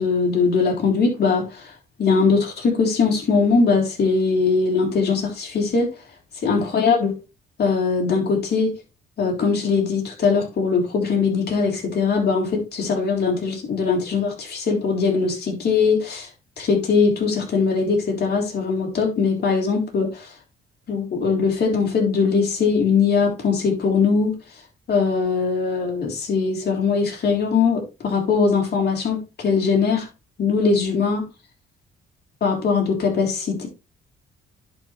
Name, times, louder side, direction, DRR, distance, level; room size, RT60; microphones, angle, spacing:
voice 1, 0.0-1.7 2.0-5.9 6.4-7.1 7.6-8.7 9.2-16.3 16.6-20.3 20.9-24.3 24.9-30.1 30.4-31.2 32.4-33.7, left 5 dB, 55° left, 3.7 m, -21 dB
10.5 x 5.1 x 3.3 m
cardioid pair, 90°, 20 cm